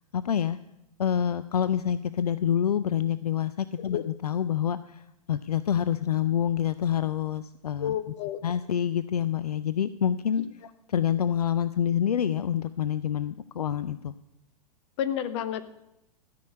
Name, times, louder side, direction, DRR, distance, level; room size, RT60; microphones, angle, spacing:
voice 1, 0.1-0.6 1.0-8.0 8.4-10.4 10.9-14.1, left 9 dB, 70° left, 15 dB, 0.5 m, -27 dB
voice 2, 7.8-8.4 15.0-15.6, left 10 dB, 45° left, 13 dB, 1.0 m, -30 dB
13.5 x 6.3 x 8.3 m, 0.89 s
figure-of-eight pair, 100°, 20 cm